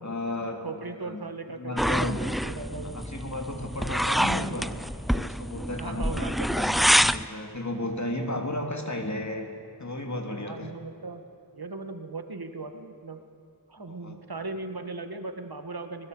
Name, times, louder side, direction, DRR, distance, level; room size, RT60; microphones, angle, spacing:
voice 1, 0.0-1.2 1.6-2.2 2.9-4.7 5.1-9.5 9.8-10.7 13.9-14.2, left 1 dB, 40° left, 4 dB, 3.3 m, -34 dB
voice 2, 0.6-3.0 5.8-7.1 10.4-11.2 11.5-13.2 13.7-16.1, right 3 dB, 60° right, 7 dB, 1.9 m, -38 dB
scraping scoop, 1.8-7.3, equal, ahead, 0.5 m, -26 dB
24.0 x 20.5 x 7.9 m, 2.7 s
wide cardioid pair, 60°, 42 cm